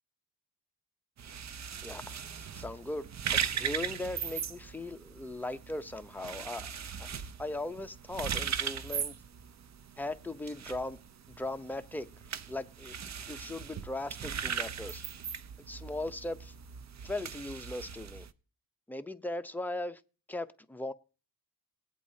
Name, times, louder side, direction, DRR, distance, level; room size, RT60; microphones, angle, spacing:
sound 1, 1.2-18.3, right 7 dB, 45° right, 0.7 m, -39 dB
voice 1, 1.8-6.7 7.0-7.1 7.4-9.1 10.0-11.0 11.3-12.1 12.5-15.0 15.7-16.5 17.0-18.3 18.9-20.0 20.3-20.9, left 2 dB, 5° left, 0.7 m, -38 dB
20.5 x 8.3 x 2.8 m
cardioid pair, 70°, 39 cm